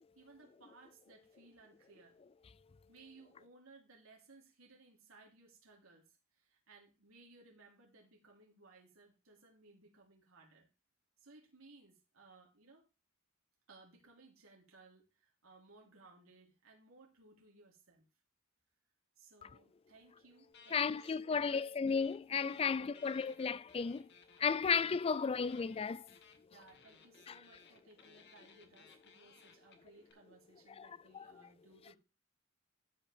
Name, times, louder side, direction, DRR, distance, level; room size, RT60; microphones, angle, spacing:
voice 1, 0.1-2.2 2.9-10.7 11.2-12.9 13.7-18.0 19.2-21.7 22.6-23.0 24.6-24.8 26.5-32.0, right 3 dB, 80° right, 3.4 m, -62 dB
sound 1, 20.5-21.6 21.9-30.1, left 6 dB, 55° left, 1.5 m, -62 dB
voice 2, 20.7-24.1 24.4-26.1 30.8-30.9, left 5 dB, 30° left, 0.3 m, -34 dB
13.0 x 5.4 x 3.5 m
head